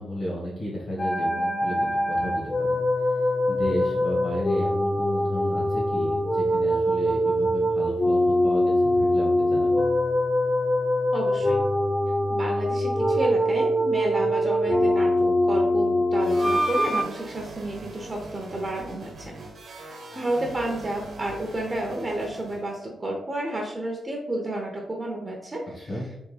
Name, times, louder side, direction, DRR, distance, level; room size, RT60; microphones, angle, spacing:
voice 1, 0.0-3.1 3.5-9.9 14.2-14.3 25.7-26.0, equal, 55° left, -5 dB, 1.2 m, -33 dB
sound 1, 1.0-17.0, left 1 dB, 25° left, 0.3 m, -23 dB
voice 2, 11.1-11.6 12.3-19.3 19.7-25.9, right 1 dB, 30° right, 0 dB, 0.5 m, -31 dB
sound 2, 16.2-22.7, right 2 dB, 75° right, 1.0 m, -41 dB
3.4 x 2.1 x 3.2 m, 0.85 s
cardioid pair, 105°, 0 cm